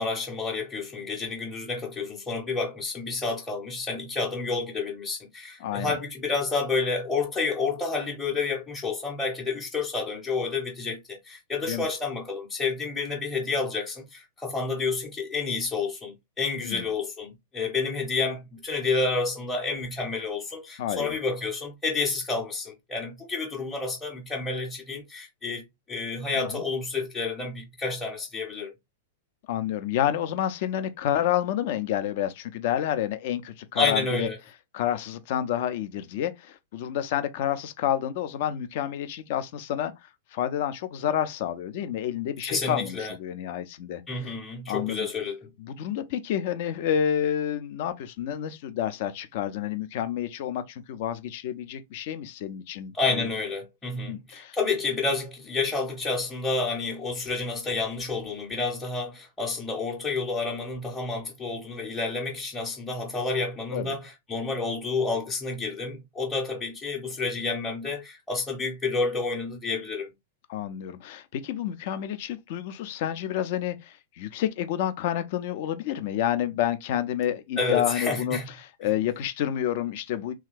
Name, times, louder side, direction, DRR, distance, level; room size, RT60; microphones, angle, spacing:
voice 1, 0.0-25.6 25.9-28.7 33.7-34.4 42.4-43.1 44.1-45.5 52.9-70.1 77.6-78.4, left 4 dB, 10° left, 0.7 m, -29 dB
voice 2, 5.6-6.0 11.7-11.9 16.6-16.9 20.8-21.2 26.4-26.6 29.5-34.3 34.7-39.9 40.3-44.3 44.7-45.1 45.6-53.3 54.1-54.6 63.7-64.0 70.5-80.3, left 10 dB, 45° left, 0.5 m, -29 dB
3.1 x 2.3 x 3.2 m
figure-of-eight pair, 100°, 0 cm